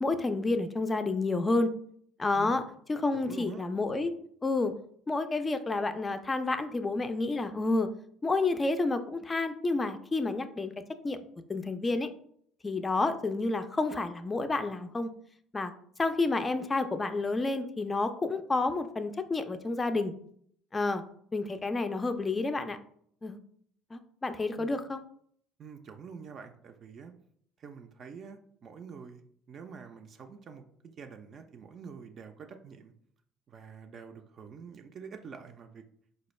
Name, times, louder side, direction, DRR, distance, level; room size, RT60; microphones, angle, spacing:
voice 1, 0.0-1.7 2.2-2.6 2.9-4.1 4.4-4.7 5.1-7.9 8.2-10.7 11.0-11.2 11.5-12.1 12.6-15.1 15.5-15.7 16.0-20.1 20.7-21.0 21.3-22.8 23.2-23.4 23.9-25.0, left 3 dB, 25° left, 9 dB, 0.3 m, -29 dB
voice 2, 3.1-3.7 24.6-24.7 25.6-27.1 27.6-29.2 29.5-32.9 33.5-35.8, right 6 dB, 50° right, 5 dB, 0.4 m, -47 dB
4.1 x 2.2 x 3.1 m, 0.64 s
hypercardioid pair, 70°, 0 cm